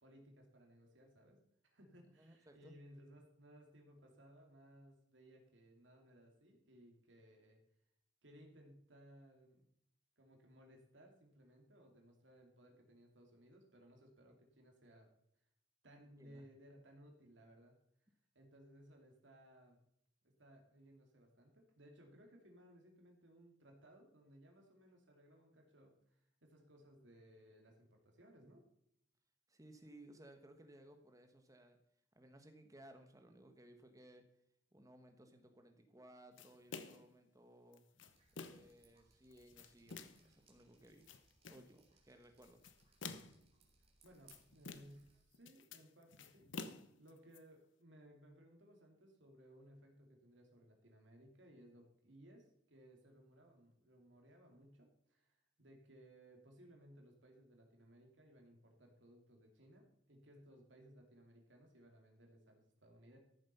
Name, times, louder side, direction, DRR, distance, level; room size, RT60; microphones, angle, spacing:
voice 1, 0.0-1.4 1.6-7.6 8.2-9.7 10.2-15.1 15.8-17.8 18.3-19.8 20.2-28.7 44.0-63.2, equal, 75° right, 2 dB, 2.8 m, -62 dB
voice 2, 2.2-2.8 16.2-16.4 29.5-31.8 32.1-34.2 34.7-37.8 38.3-41.1 41.5-42.6, right 1 dB, 20° right, 6 dB, 1.2 m, -61 dB
sound 1, 36.4-37.1 37.7-38.8 39.3-40.3 40.8-41.7 42.4-43.5 44.0-45.1 45.3-47.4, left 4 dB, 85° left, 1.0 m, -51 dB
Drip, 38.1-45.2, right 4 dB, 35° right, 3.0 m, -72 dB
14.0 x 7.5 x 5.5 m, 0.75 s
head